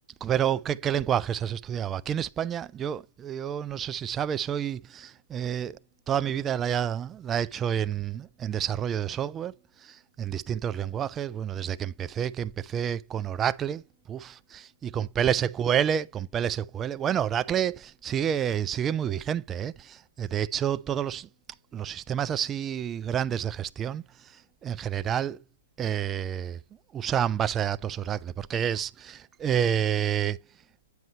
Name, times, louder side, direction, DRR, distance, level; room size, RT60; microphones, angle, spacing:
voice 1, 0.2-5.8 6.1-9.5 9.8-13.8 14.1-21.3 21.7-24.0 24.6-25.4 25.8-26.6 26.9-30.4, right 9 dB, 20° right, 0.3 m, -29 dB
9.3 x 5.2 x 3.1 m
hypercardioid pair, 145°, 0 cm